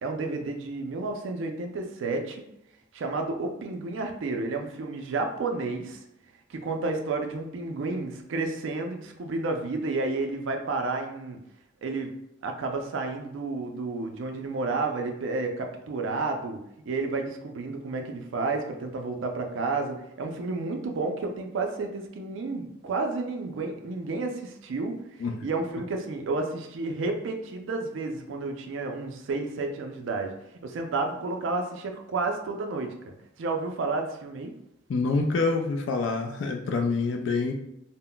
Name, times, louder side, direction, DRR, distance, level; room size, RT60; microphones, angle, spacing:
voice 1, 0.0-2.4 2.9-6.0 6.5-11.4 11.8-12.1 12.4-16.6 16.9-25.0 25.4-30.3 30.6-34.5, right 3 dB, 70° right, 4 dB, 0.4 m, -31 dB
voice 2, 34.9-37.5, left 3 dB, 65° left, 4 dB, 0.3 m, -26 dB
2.2 x 2.0 x 3.7 m, 0.83 s
head